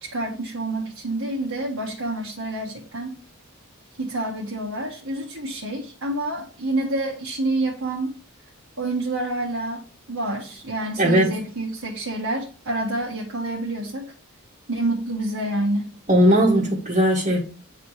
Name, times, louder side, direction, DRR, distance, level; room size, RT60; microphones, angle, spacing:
voice 1, 0.0-3.1 4.0-8.1 8.8-14.0 14.7-15.9, right 2 dB, 80° right, 1.4 m, -28 dB
voice 2, 11.0-11.4 16.1-17.4, equal, 35° right, 1.2 m, -18 dB
9.3 x 3.7 x 4.8 m
head